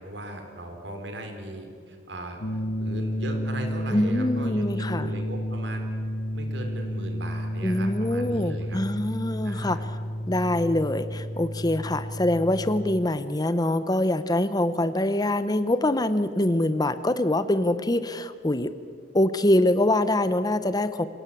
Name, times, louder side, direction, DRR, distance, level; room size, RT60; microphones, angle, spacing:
voice 1, 0.0-2.4 2.8-5.9 6.3-8.8 9.4-9.8, right 1 dB, 80° right, 5 dB, 4.0 m, -38 dB
sound 1, 2.4-13.0, equal, 60° left, 1.1 m, -31 dB
voice 2, 3.9-5.1 7.6-9.8 10.3-18.7 19.1-21.1, left 1 dB, 20° left, 13 dB, 0.8 m, -24 dB
27.0 x 17.0 x 8.5 m, 2.2 s
head